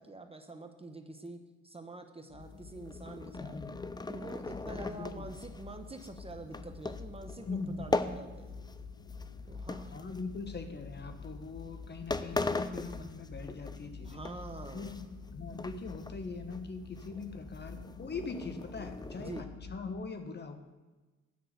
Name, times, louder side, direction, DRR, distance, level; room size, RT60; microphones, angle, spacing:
voice 1, 0.0-3.6 4.1-8.6 9.5-9.9 14.0-15.0 19.2-19.5, right 2 dB, 20° right, 6 dB, 1.0 m, -46 dB
sound 1, 2.3-20.0, left 4 dB, 65° left, 1.4 m, -48 dB
sound 2, 2.7-8.8 9.1-10.6 11.2-11.4 11.8-11.9 12.1-13.8 14.1-15.3 15.6-16.2 16.5-16.6 17.0-19.4, left 3 dB, 15° left, 0.6 m, -39 dB
voice 2, 3.4-3.8 4.5-4.6 4.9-5.3 7.5-7.9 9.9-14.2 14.7-20.6, left 4 dB, 35° left, 7 dB, 1.3 m, -42 dB
10.5 x 6.1 x 8.1 m, 1.2 s
cardioid pair, 90°, 30 cm